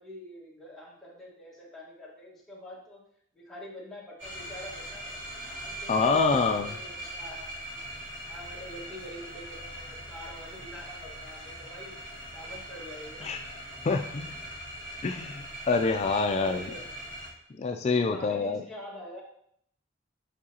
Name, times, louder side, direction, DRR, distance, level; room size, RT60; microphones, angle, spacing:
voice 1, 0.0-3.0 3.3-7.8 8.3-11.9 12.3-13.4 16.3-17.1 17.9-19.2, left 1 dB, ahead, -6 dB, 1.6 m, -45 dB
sound 1, 4.2-17.3, right 1 dB, 75° right, 2.0 m, -41 dB
voice 2, 5.9-6.7 13.2-13.4 13.8-14.4 15.0-16.6 17.6-18.6, left 4 dB, 35° left, 5 dB, 0.3 m, -26 dB
7.4 x 4.6 x 2.8 m, 0.67 s
head